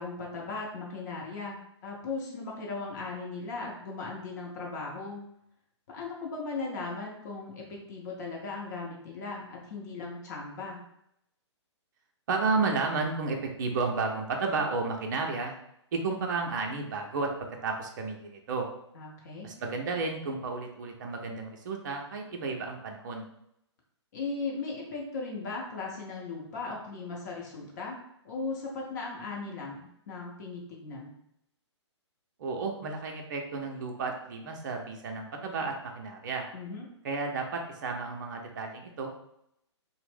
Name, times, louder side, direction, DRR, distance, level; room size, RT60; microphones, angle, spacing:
voice 1, 0.0-5.2 5.9-10.8 18.9-19.5 24.1-28.0 28.2-31.1 36.5-36.8, left 3 dB, 40° left, -2 dB, 0.7 m, -37 dB
voice 2, 12.3-15.5 15.9-18.7 19.4-23.3 32.4-36.5 37.0-39.1, right 4 dB, 40° right, 2 dB, 0.5 m, -32 dB
2.5 x 2.0 x 3.4 m, 0.77 s
figure-of-eight pair, 125°, 15 cm